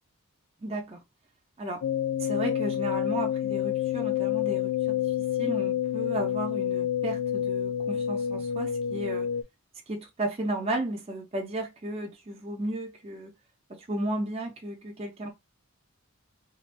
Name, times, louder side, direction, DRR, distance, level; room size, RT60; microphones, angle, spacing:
voice 1, 0.6-1.0 1.6-1.8 2.2-9.3 9.9-13.3 13.7-15.3, right 1 dB, 25° right, 0.5 m, -34 dB
sound 1, 1.8-9.4, left 10 dB, 80° left, 0.4 m, -28 dB
3.3 x 2.3 x 2.4 m
head